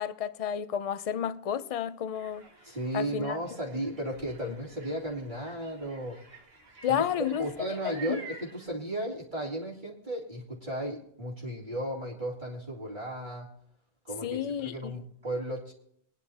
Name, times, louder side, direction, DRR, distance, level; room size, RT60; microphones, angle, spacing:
voice 1, 0.0-2.5 2.9-3.4 4.4-4.5 6.8-7.5 7.9-8.2 14.2-15.0, left 9 dB, 45° left, 0.5 m, -31 dB
sound 1, 2.1-8.7, right 4 dB, 70° right, 1.9 m, -50 dB
voice 2, 2.6-6.2 6.9-7.0 7.4-13.5 14.0-15.7, right 1 dB, 50° right, 2.9 m, -35 dB
23.0 x 10.5 x 2.8 m
omnidirectional pair, 1.1 m